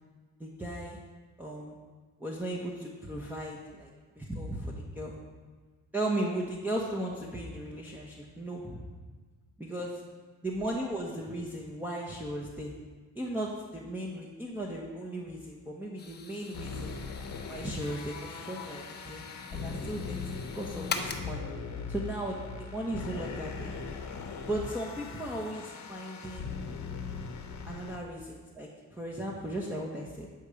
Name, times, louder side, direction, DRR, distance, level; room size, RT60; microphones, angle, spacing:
voice 1, 0.4-1.0 1.4-1.8 2.2-5.1 5.9-8.9 9.6-10.0 10.4-12.7 13.1-17.0 17.5-19.2 19.5-21.4 21.9-23.7 24.5-26.5 27.7-30.3, right 1 dB, 5° right, -4 dB, 1.2 m, -36 dB
sound 1, 16.0-21.5, left 5 dB, 35° left, 0.9 m, -42 dB
sound 2, 16.5-28.0, left 5 dB, 70° left, 1.1 m, -40 dB
8.7 x 5.5 x 5.0 m, 1.4 s
cardioid pair, 90°, 30 cm